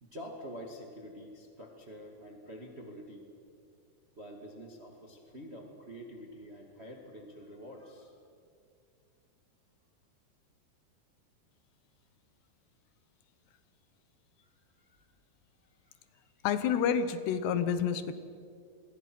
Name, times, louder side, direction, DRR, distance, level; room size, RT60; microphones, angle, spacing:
voice 1, 0.0-3.3 4.2-8.2 14.4-15.0 15.8-16.4, equal, 30° right, 2 dB, 1.3 m, -47 dB
voice 2, 16.4-18.1, left 7 dB, 85° left, 11 dB, 3.3 m, -29 dB
29.0 x 22.5 x 6.1 m, 2.3 s
omnidirectional pair, 4.7 m